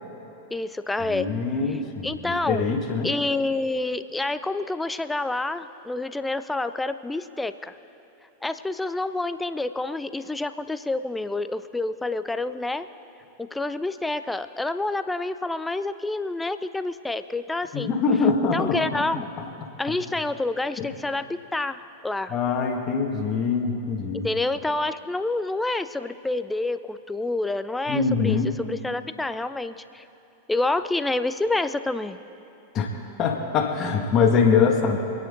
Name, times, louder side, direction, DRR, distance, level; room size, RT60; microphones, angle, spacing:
voice 1, 0.5-1.3 2.0-2.6 3.0-7.7 8.4-12.9 13.4-17.9 18.5-19.3 19.8-22.3 24.2-28.4 28.7-30.0 30.5-32.2, left 2 dB, 5° left, 12 dB, 0.5 m, -28 dB
voice 2, 1.1-3.1 17.7-18.9 19.4-19.5 20.8-20.9 22.3-24.3 27.9-28.5 32.7-32.9 33.2-35.0, left 5 dB, 30° left, 1 dB, 2.0 m, -23 dB
27.0 x 9.6 x 3.9 m, 2.9 s
figure-of-eight pair, 90°, 0 cm